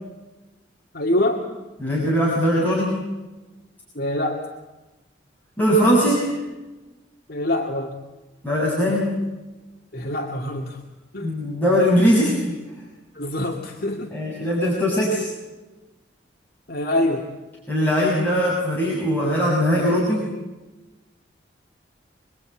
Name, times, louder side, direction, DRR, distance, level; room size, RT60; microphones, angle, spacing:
voice 1, 0.9-1.4 3.9-4.5 7.3-7.9 9.9-10.8 11.1-11.4 13.1-14.1 16.7-17.2, left 1 dB, 55° left, 0 dB, 2.4 m, -25 dB
voice 2, 1.8-3.0 5.6-6.3 8.4-9.2 11.2-12.6 14.1-15.3 17.7-20.3, equal, 10° left, -5 dB, 7.0 m, -20 dB
27.0 x 22.5 x 9.2 m, 1.1 s
head